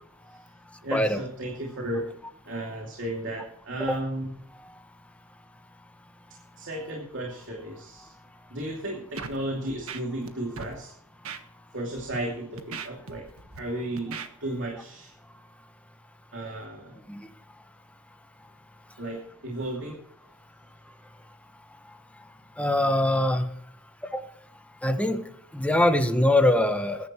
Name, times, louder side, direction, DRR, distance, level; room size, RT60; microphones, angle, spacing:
voice 1, 0.8-2.0 2.5-4.3 6.5-8.1 8.5-10.9 11.7-13.3 13.6-15.1 16.3-17.0 19.0-20.0, right 1 dB, 60° right, -1 dB, 2.7 m, -34 dB
Scratching (performance technique), 9.2-9.4 9.7-10.3 10.6-10.7 11.2-11.4 12.0-12.2 12.6-13.6 14.0-14.3, right 5 dB, 85° right, 1.5 m, -38 dB
voice 2, 22.6-23.4 24.1-24.2 24.8-25.2 25.5-27.0, left 1 dB, 5° left, 7 dB, 1.3 m, -22 dB
21.0 x 11.0 x 3.1 m, 0.69 s
head